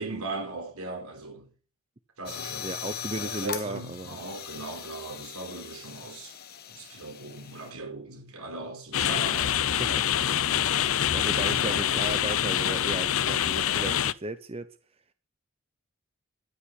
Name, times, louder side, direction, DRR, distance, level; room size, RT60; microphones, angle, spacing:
voice 1, 0.0-1.5 2.2-2.7 3.1-6.4 6.7-10.8 11.4-12.3, right 3 dB, 80° right, 4.7 m, -39 dB
sound 1, 2.3-7.7, left 9 dB, 45° left, 1.2 m, -40 dB
voice 2, 2.6-4.2 11.1-14.8, right 2 dB, 25° right, 0.7 m, -35 dB
sound 2, 8.9-14.1, left 10 dB, 70° left, 0.6 m, -25 dB
13.0 x 8.8 x 8.2 m
head